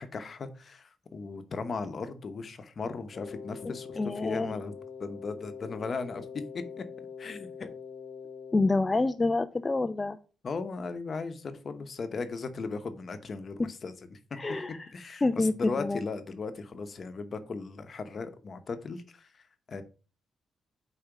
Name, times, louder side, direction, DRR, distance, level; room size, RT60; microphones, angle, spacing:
voice 1, 0.0-4.7 5.0-6.8 7.2-7.7 10.4-14.4 14.9-19.8, left 4 dB, 50° left, 9 dB, 0.9 m, -37 dB
Wind instrument woodwind instrument, 3.1-8.8, left 6 dB, 65° left, 1.0 m, -44 dB
voice 2, 3.7-4.5 8.5-10.2 14.3-14.9 15.2-16.0, left 3 dB, 25° left, 9 dB, 0.4 m, -28 dB
5.1 x 4.2 x 5.8 m, 0.37 s
cardioid pair, 85°, 0 cm